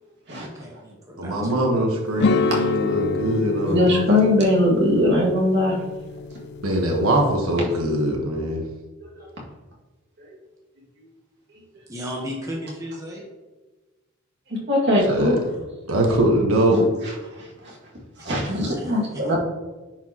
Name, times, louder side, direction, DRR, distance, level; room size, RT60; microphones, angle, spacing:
voice 1, 0.4-1.9 11.9-13.3 18.4-18.9, equal, 15° right, -2 dB, 1.0 m, -35 dB
voice 2, 1.2-3.9 6.6-8.6 15.1-15.4 15.9-16.8, right 1 dB, 85° right, 0 dB, 1.2 m, -22 dB
sound 1, 2.2-7.4, left 5 dB, 55° left, 0.3 m, -27 dB
voice 3, 3.6-5.8 9.0-9.3 10.2-10.3 14.7-15.4 16.7-17.1 17.4-17.8 18.2-19.4, left 1 dB, 55° right, -4 dB, 2.1 m, -21 dB
10.0 x 4.7 x 2.9 m, 1.2 s
head